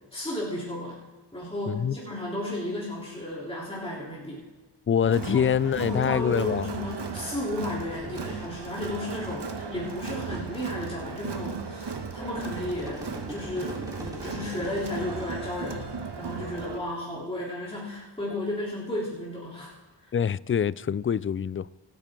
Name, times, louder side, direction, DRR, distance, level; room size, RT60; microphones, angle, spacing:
voice 1, 0.1-1.0 1.3-4.4 5.3-5.4 5.8-19.7, left 1 dB, 10° left, 3.6 m, -33 dB
voice 2, 1.7-2.0 4.9-6.7 20.1-21.7, left 8 dB, 30° left, 0.4 m, -25 dB
Crowd, 5.0-16.8, right 5 dB, 60° right, 1.3 m, -37 dB
sound 1, 8.0-8.5 9.0-9.1 9.9-10.6 11.3-11.4 11.9-15.5, equal, 10° right, 3.9 m, -41 dB
23.0 x 9.2 x 3.8 m
cardioid pair, 40°, 46 cm